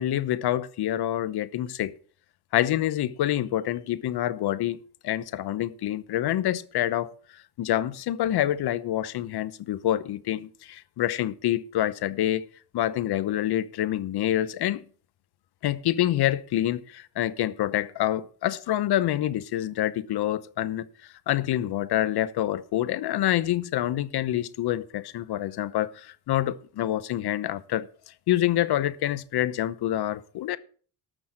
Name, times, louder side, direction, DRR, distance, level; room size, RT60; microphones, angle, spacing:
voice 1, 0.0-2.0 2.5-7.1 7.6-12.5 12.7-14.8 15.6-20.9 21.3-27.9 28.3-30.6, left 13 dB, 75° left, 1.0 m, -27 dB
13.0 x 6.2 x 7.6 m
cardioid pair, 75°, 38 cm